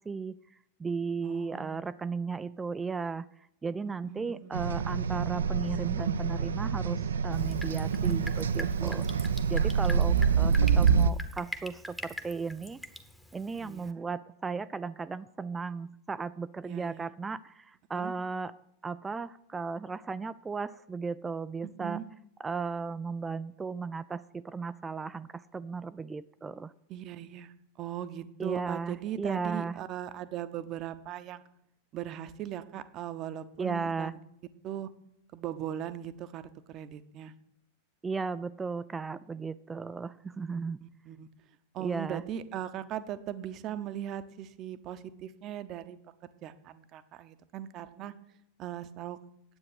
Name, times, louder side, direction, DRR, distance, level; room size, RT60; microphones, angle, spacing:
voice 1, 0.0-12.8 13.3-18.5 18.8-22.0 22.4-26.7 28.4-29.8 33.6-34.1 38.0-40.8 41.8-42.2, right 4 dB, 15° right, 14 dB, 0.3 m, -36 dB
voice 2, 1.2-1.8 4.0-4.5 13.6-13.9 16.6-17.1 18.0-18.1 21.6-22.0 26.9-31.4 31.9-34.2 34.6-34.9 35.3-36.4 36.7-37.3 40.8-41.3 41.7-48.1 48.6-49.2, right 11 dB, 35° right, 13 dB, 0.8 m, -39 dB
sound 1, 4.5-11.1, right 6 dB, 65° right, 0.5 m, -26 dB
Drip, 7.3-13.9, equal, 5° left, 1.0 m, -44 dB
9.9 x 8.4 x 6.5 m, 0.75 s
figure-of-eight pair, 90°, 0 cm